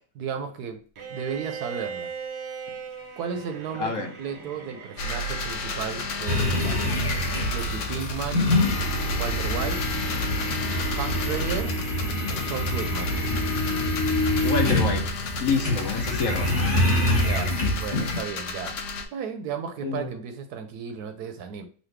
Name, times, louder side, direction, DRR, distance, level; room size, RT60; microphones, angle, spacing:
voice 1, 0.1-0.8 1.1-2.1 3.2-6.8 7.4-8.5 9.1-9.8 10.9-11.8 12.3-13.1 17.1-18.8 19.1-21.7, right 7 dB, 75° right, 7 dB, 1.1 m, -34 dB
Bowed string instrument, 1.0-5.6, right 6 dB, 55° right, 0.8 m, -38 dB
sound 1, 5.0-19.1, left 1 dB, 80° left, 1.3 m, -33 dB
sound 2, 6.2-18.2, left 1 dB, 25° left, 1.5 m, -26 dB
voice 2, 14.4-15.0 15.4-16.5 19.8-20.1, left 5 dB, 60° left, 4 dB, 1.1 m, -27 dB
4.1 x 2.6 x 3.2 m, 0.41 s
omnidirectional pair, 1.8 m